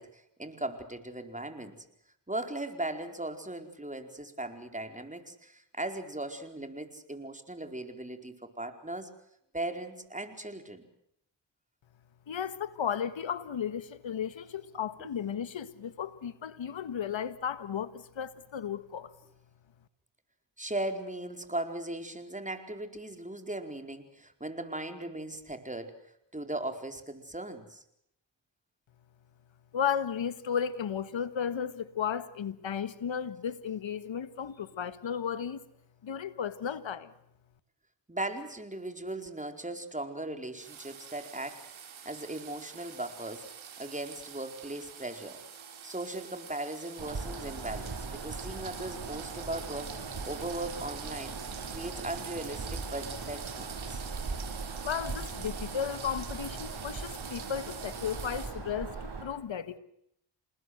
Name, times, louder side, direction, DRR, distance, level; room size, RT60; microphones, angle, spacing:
voice 1, 0.0-1.8 2.3-9.1 9.5-10.8 20.6-25.9 26.3-27.8 38.1-43.5 43.8-45.4 45.8-51.3 51.7-54.0, right 1 dB, 15° right, 4.7 m, -38 dB
voice 2, 12.3-19.1 29.7-35.6 36.0-37.1 54.8-59.8, left 8 dB, 75° left, 1.7 m, -34 dB
sound 1, 40.6-58.5, right 7 dB, 85° right, 3.7 m, -46 dB
Bird vocalization bird call bird song, 47.0-59.2, right 4 dB, 60° right, 7.7 m, -40 dB
28.0 x 20.0 x 8.0 m
cardioid pair, 45°, 46 cm